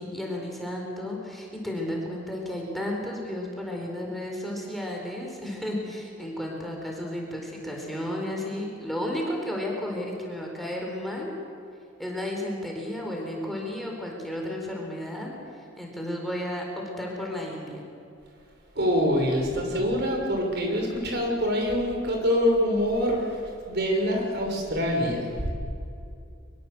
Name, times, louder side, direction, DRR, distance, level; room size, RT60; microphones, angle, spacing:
voice 1, 0.0-11.3 12.0-15.4 15.8-16.6 17.0-17.8, left 1 dB, ahead, -1 dB, 4.3 m, -33 dB
voice 2, 18.8-23.4 23.7-25.5, equal, 60° right, 1 dB, 5.8 m, -25 dB
24.0 x 22.0 x 8.0 m, 2.5 s
head